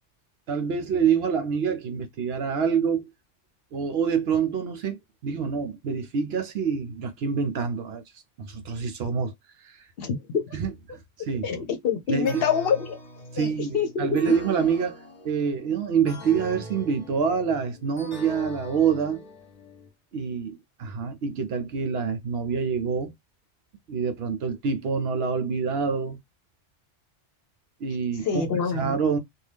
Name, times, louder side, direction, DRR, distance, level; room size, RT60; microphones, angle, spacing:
voice 1, 0.5-3.1 3.7-8.0 8.4-9.3 10.5-11.5 12.1-12.4 13.3-14.9 15.2-19.2 20.1-23.1 23.9-26.2 27.8-29.2, right 6 dB, 65° right, 0.7 m, -26 dB
voice 2, 10.0-10.6 11.2-13.0 13.3-14.4 28.2-29.0, left 6 dB, 60° left, 0.8 m, -26 dB
sound 1, 12.2-19.9, left 1 dB, 35° left, 1.0 m, -43 dB
2.7 x 2.3 x 3.2 m
omnidirectional pair, 1.2 m